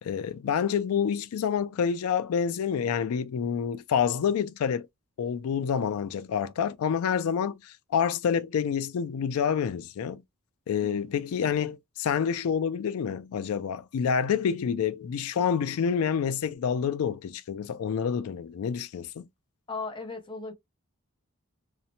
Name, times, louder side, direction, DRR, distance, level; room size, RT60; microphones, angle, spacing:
voice 1, 0.0-4.9 5.2-10.2 10.7-19.3, left 7 dB, 80° left, 0.3 m, -28 dB
voice 2, 10.8-11.2 19.7-20.5, left 3 dB, 20° left, 0.5 m, -37 dB
2.9 x 2.0 x 2.7 m
head